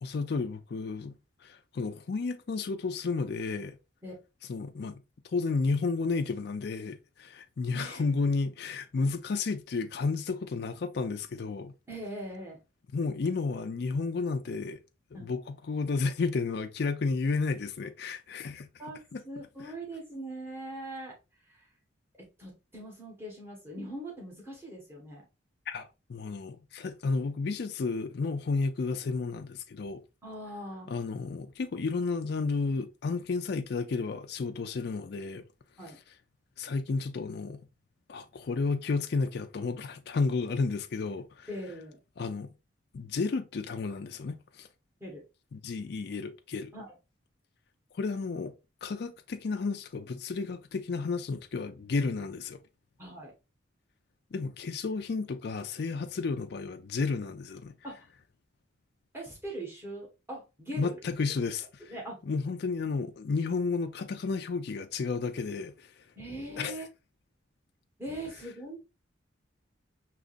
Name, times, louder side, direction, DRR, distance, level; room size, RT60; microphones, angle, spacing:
voice 1, 0.0-1.2 1.4-3.8 4.5-5.0 5.3-11.7 12.9-14.8 15.1-18.7 19.1-19.2 19.6-19.7 25.7-30.0 30.9-35.5 36.6-37.6 38.1-41.5 42.2-42.5 42.9-44.7 45.5-46.7 47.9-48.5 48.8-52.6 54.3-57.7 60.8-61.7 62.3-65.9 66.6-66.8, left 4 dB, 55° left, 0.4 m, -32 dB
voice 2, 7.7-8.1 11.9-12.6 15.1-15.3 18.8-19.0 19.2-21.2 21.5-21.7 22.2-25.2 30.2-30.9 35.8-36.0 41.5-42.0 45.0-45.2 46.7-46.9 53.0-53.3 57.8-58.0 59.1-61.0 61.9-62.2 66.1-66.9 68.0-68.8, right 1 dB, 10° right, 1.4 m, -41 dB
5.0 x 3.1 x 2.5 m
head